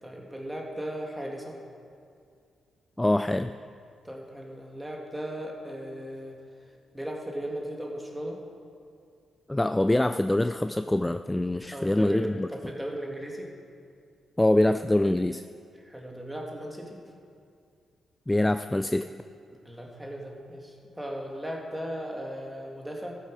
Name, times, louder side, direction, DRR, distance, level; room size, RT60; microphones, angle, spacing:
voice 1, 0.0-1.6 4.0-6.4 6.9-8.4 11.7-13.5 15.8-17.0 19.6-23.2, equal, 10° right, 0 dB, 2.2 m, -37 dB
voice 2, 3.0-3.5 9.5-12.5 14.4-15.5 18.3-19.1, left 1 dB, 15° left, 10 dB, 0.3 m, -24 dB
14.0 x 7.6 x 4.8 m, 2.3 s
supercardioid pair, 55°, 0 cm